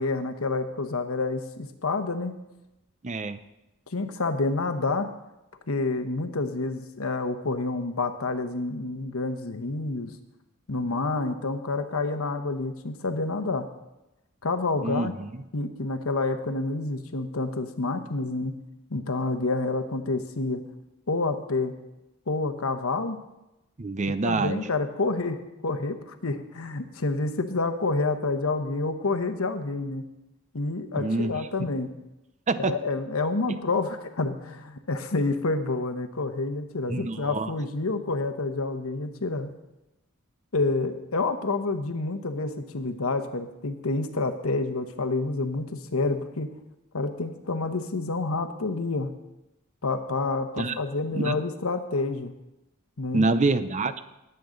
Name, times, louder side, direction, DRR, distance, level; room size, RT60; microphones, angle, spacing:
voice 1, 0.0-2.3 3.9-5.1 5.7-10.1 10.7-13.7 14.4-15.1 15.5-18.6 18.9-20.6 21.1-21.8 22.3-23.2 24.2-30.1 30.5-31.9 32.6-39.5 40.5-46.5 46.9-49.2 49.8-52.3 53.0-53.3, left 3 dB, 80° left, 8 dB, 1.1 m, -28 dB
voice 2, 3.0-3.4 14.8-15.4 23.8-24.6 31.0-31.3 32.5-32.7 36.9-37.5 50.6-50.7 51.1-51.3 53.1-54.0, right 3 dB, 35° right, 12 dB, 0.6 m, -26 dB
19.5 x 7.9 x 3.9 m, 0.95 s
head